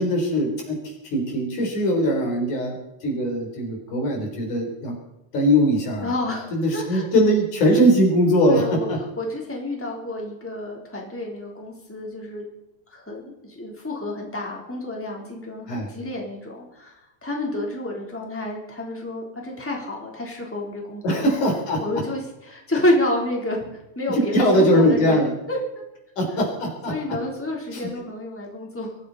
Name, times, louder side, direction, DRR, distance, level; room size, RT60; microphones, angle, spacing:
voice 1, 0.0-5.0 5.3-6.1 6.5-9.0 13.2-13.3 15.7-15.9 21.0-22.0 24.1-25.3 26.2-26.9 27.7-27.9, equal, 85° left, 0 dB, 5.6 m, -21 dB
voice 2, 6.0-7.1 8.5-8.9 9.2-12.4 12.9-21.4 21.7-25.2 25.5-25.6 26.9-29.0, left 1 dB, 5° left, -1 dB, 3.4 m, -29 dB
22.0 x 15.0 x 4.2 m, 0.90 s
omnidirectional pair, 3.4 m